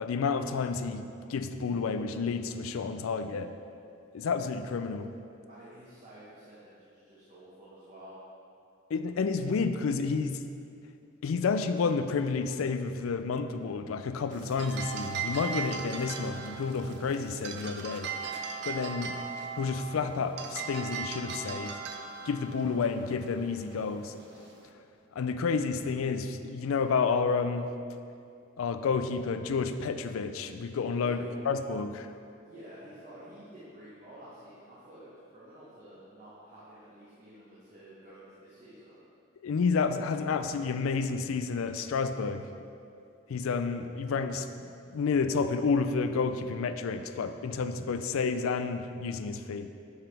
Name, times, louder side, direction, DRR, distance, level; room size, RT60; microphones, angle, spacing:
voice 1, 0.0-3.5 4.1-5.1 8.9-10.4 11.2-18.1 18.6-19.2 19.5-21.8 22.2-24.1 25.1-27.7 28.6-31.2 31.4-32.1 39.4-42.7 43.3-44.5 44.9-49.7, left 5 dB, 90° left, 9 dB, 0.4 m, -30 dB
voice 2, 5.5-8.2 31.0-31.3 32.4-39.0, right 1 dB, 35° right, -9 dB, 1.2 m, -50 dB
sound 1, 14.3-24.7, right 5 dB, 55° right, 0.5 m, -39 dB
9.5 x 4.9 x 3.4 m, 2.5 s
head